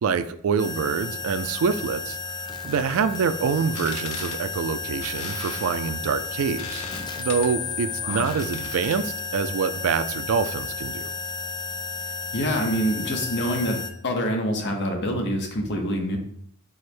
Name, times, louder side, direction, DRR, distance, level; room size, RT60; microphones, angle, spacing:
voice 1, 0.0-2.2 2.6-6.8 7.2-11.1, right 6 dB, 85° right, 12 dB, 0.3 m, -25 dB
sound 1, 0.6-13.9, left 5 dB, 20° left, 0.4 m, -33 dB
sound 2, 3.6-9.2, left 5 dB, 90° left, 0.7 m, -40 dB
voice 2, 12.3-13.8 14.0-16.2, equal, 55° left, 3 dB, 0.8 m, -26 dB
4.8 x 2.1 x 4.4 m, 0.65 s
head